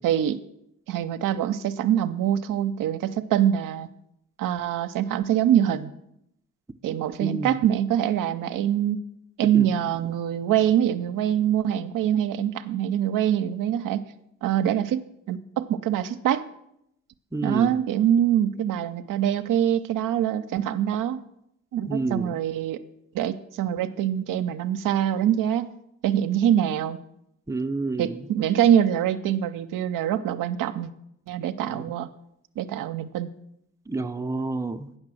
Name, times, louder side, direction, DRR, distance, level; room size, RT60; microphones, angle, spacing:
voice 1, 0.0-0.4 0.9-3.9 4.4-5.9 6.8-9.0 9.4-14.0 14.4-16.4 17.4-21.2 21.7-22.8 23.1-25.7 26.0-27.0 28.0-30.9 31.3-32.1 32.6-33.3, right 10 dB, 70° right, 9 dB, 0.6 m, -24 dB
voice 2, 7.2-7.6 9.5-9.7 17.3-17.8 21.9-22.4 27.5-28.2 31.7-31.8 33.9-34.9, right 3 dB, 10° right, 7 dB, 0.6 m, -29 dB
8.7 x 6.4 x 6.2 m, 0.78 s
supercardioid pair, 50°, 34 cm